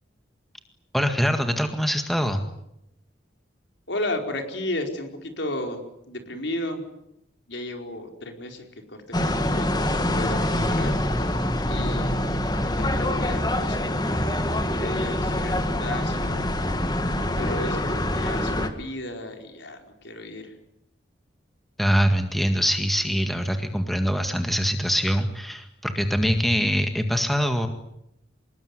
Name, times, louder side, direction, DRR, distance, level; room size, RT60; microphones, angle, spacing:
voice 1, 0.9-2.4 21.8-27.7, equal, ahead, 6 dB, 1.9 m, -23 dB
voice 2, 3.9-5.8 6.1-6.8 7.5-11.0 11.6-12.3 12.8-16.5 17.3-20.5, left 1 dB, 70° left, 4 dB, 4.7 m, -34 dB
sound 1, 9.1-18.7, left 1 dB, 20° left, 2.0 m, -25 dB
26.0 x 21.0 x 9.8 m, 0.81 s
head